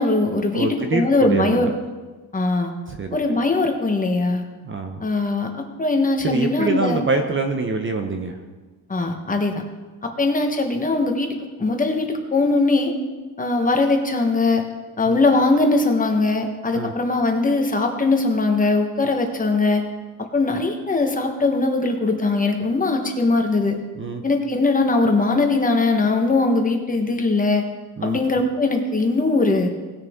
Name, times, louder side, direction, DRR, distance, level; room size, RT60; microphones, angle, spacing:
voice 1, 0.0-1.7 2.3-2.7 3.1-4.4 5.0-7.1 8.9-9.6 10.0-12.9 13.4-14.6 15.0-19.8 20.3-23.8 24.2-27.6 28.0-29.7, left 3 dB, 20° left, 4 dB, 1.1 m, -20 dB
voice 2, 0.5-1.7 3.0-3.2 4.7-5.0 6.2-8.4 15.1-15.2 16.7-16.9 24.0-24.2 28.0-28.2, right 3 dB, 30° right, 5 dB, 0.8 m, -25 dB
18.5 x 6.6 x 3.6 m, 1.3 s
cardioid pair, 150°, 40 cm